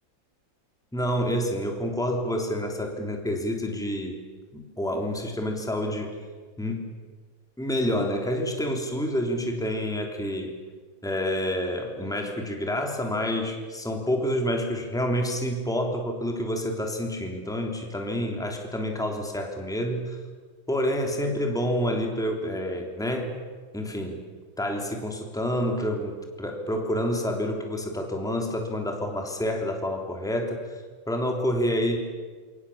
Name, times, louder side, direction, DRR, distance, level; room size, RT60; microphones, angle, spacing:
voice 1, 0.9-4.2 4.5-6.1 6.6-6.9 7.6-10.5 11.0-20.2 20.7-23.3 23.7-24.2 24.6-30.8 31.1-32.0, equal, ahead, 2 dB, 3.2 m, -28 dB
28.0 x 24.5 x 7.2 m, 1.5 s
omnidirectional pair, 2.1 m